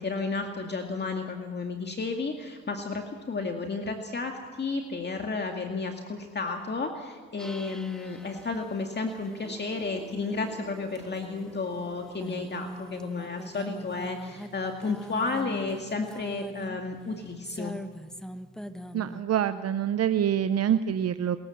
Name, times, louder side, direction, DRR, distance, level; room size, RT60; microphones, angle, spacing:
voice 1, 0.0-17.7, left 3 dB, 35° left, 3 dB, 2.1 m, -32 dB
sound 1, 7.4-19.2, left 1 dB, ahead, 1.0 m, -42 dB
voice 2, 18.9-21.4, right 9 dB, 55° right, 12 dB, 0.7 m, -26 dB
26.5 x 14.5 x 7.3 m, 1.5 s
cardioid pair, 90°, 30 cm